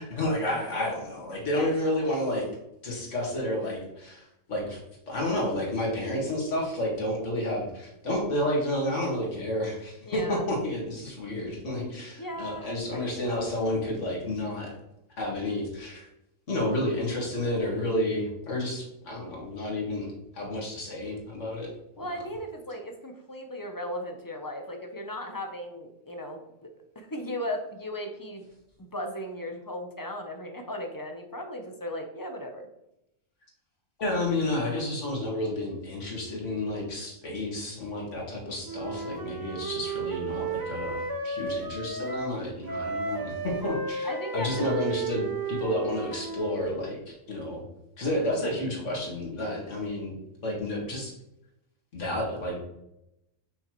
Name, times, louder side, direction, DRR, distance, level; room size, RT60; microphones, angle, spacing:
voice 1, 0.0-2.5 2.8-4.8 5.1-14.7 15.2-16.1 16.5-21.7 22.0-22.1 34.0-47.6 48.0-50.1 50.4-51.1 51.9-52.6, left 1 dB, 60° left, -2 dB, 2.1 m, -30 dB
voice 2, 10.0-10.4 12.2-13.4 22.0-28.4 28.8-32.7 38.3-38.6 44.0-44.7, equal, 25° left, 4 dB, 0.5 m, -37 dB
Wind instrument woodwind instrument, 38.6-42.4 42.6-46.6, right 4 dB, 35° right, 0.3 m, -34 dB
6.1 x 5.5 x 3.0 m, 0.85 s
omnidirectional pair, 1.4 m